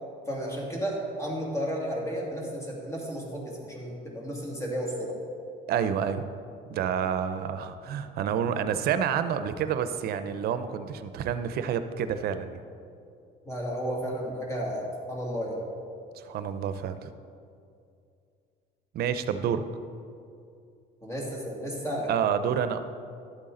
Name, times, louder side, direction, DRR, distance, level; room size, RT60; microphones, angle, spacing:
voice 1, 0.3-5.2 13.4-15.6 21.0-22.1, equal, 15° left, -2 dB, 2.4 m, -33 dB
voice 2, 5.7-6.2 6.7-12.6 16.1-17.1 18.9-19.6 22.1-22.8, right 8 dB, 70° right, 11 dB, 0.6 m, -28 dB
12.0 x 8.3 x 3.8 m, 2.4 s
cardioid pair, 110°, 17 cm